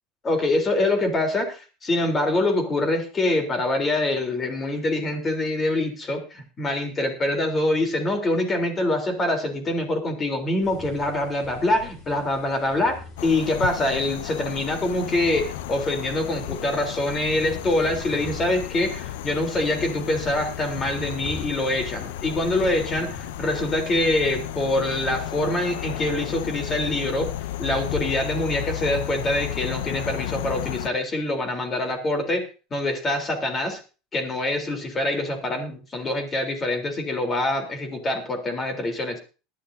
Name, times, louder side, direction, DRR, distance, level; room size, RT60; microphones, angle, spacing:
voice 1, 0.2-27.3 27.6-32.4 32.7-33.8 34.1-39.2, left 1 dB, 20° left, 5 dB, 3.5 m, -25 dB
sound 1, 10.6-24.4, left 3 dB, 40° left, 5.7 m, -44 dB
sound 2, 13.2-30.9, left 13 dB, 85° left, 0.6 m, -33 dB
20.0 x 11.5 x 2.7 m, 0.33 s
supercardioid pair, 140°, 0 cm